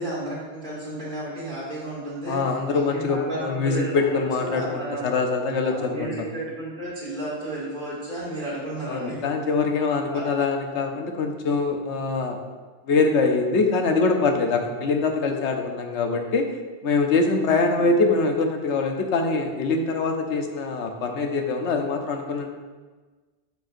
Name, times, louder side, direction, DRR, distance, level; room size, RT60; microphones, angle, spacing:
voice 1, 0.0-5.0 5.6-9.2 10.1-10.2 17.4-17.9, right 1 dB, 45° right, -8 dB, 2.6 m, -33 dB
voice 2, 2.3-6.2 8.9-12.4 12.9-16.5 16.8-22.5, left 4 dB, 85° left, 4 dB, 1.1 m, -24 dB
8.8 x 6.3 x 2.6 m, 1.4 s
omnidirectional pair, 1.2 m